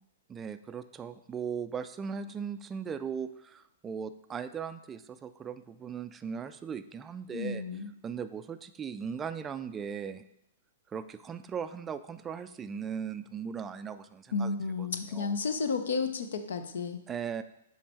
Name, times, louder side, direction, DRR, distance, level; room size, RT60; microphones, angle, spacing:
voice 1, 0.3-7.6 8.0-10.2 10.9-15.3 17.1-17.4, right 7 dB, 20° right, 11 dB, 0.3 m, -38 dB
voice 2, 7.3-7.9 14.3-17.0, left 4 dB, 70° left, 9 dB, 0.6 m, -32 dB
7.5 x 3.2 x 4.3 m, 0.82 s
figure-of-eight pair, 115°, 0 cm